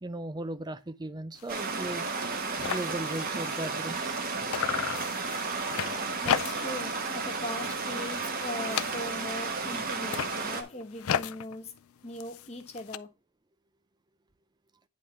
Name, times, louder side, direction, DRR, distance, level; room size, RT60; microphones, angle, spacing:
voice 1, 0.0-2.1 2.7-4.2, right 1 dB, 20° right, 0.5 m, -37 dB
sound 1, 1.4-1.6 1.9-2.0 2.2-4.2 4.5-6.9 7.2-7.6 7.9-9.4 9.9-13.0, left 9 dB, 85° left, 0.4 m, -35 dB
Stream, 1.5-10.6, right 4 dB, 45° right, 1.1 m, -33 dB
voice 2, 6.2-11.7 12.0-13.1, left 1 dB, 30° left, 1.1 m, -39 dB
9.5 x 3.6 x 4.2 m
head